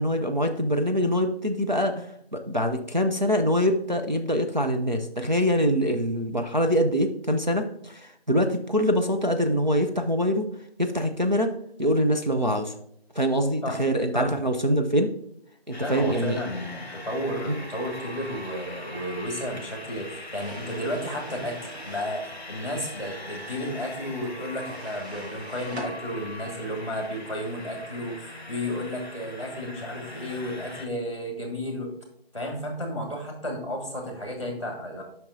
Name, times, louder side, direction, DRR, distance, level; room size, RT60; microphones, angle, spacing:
voice 1, 0.0-10.5 10.8-11.5 11.8-12.7 13.1-15.1 15.7-16.4 17.5-17.6, equal, 45° right, 4 dB, 0.5 m, -24 dB
sound 1, 15.7-30.9, left 1 dB, 45° left, 1.0 m, -41 dB
voice 2, 15.8-31.9 32.3-35.0, equal, 30° left, 2 dB, 1.6 m, -32 dB
sound 2, 20.4-22.2 24.6-25.9, right 1 dB, 80° right, 2.2 m, -41 dB
8.6 x 5.9 x 2.6 m, 0.73 s
figure-of-eight pair, 180°, 31 cm